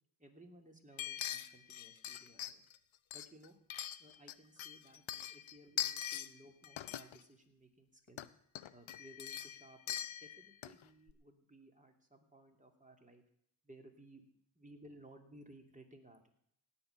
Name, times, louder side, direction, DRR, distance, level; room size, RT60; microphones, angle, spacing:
voice 1, 0.2-2.7 3.1-3.6 4.0-8.2 8.7-13.2 13.6-14.2 14.5-16.3, right 1 dB, 15° right, 3 dB, 2.8 m, -59 dB
sound 1, 1.0-2.8 3.1-4.3 4.6-6.3 6.6-7.2 8.1-8.3 8.6-10.8 11.1-11.2, left 10 dB, 70° left, 0.8 m, -42 dB
17.5 x 5.8 x 9.1 m, 0.71 s
cardioid pair, 60°, 50 cm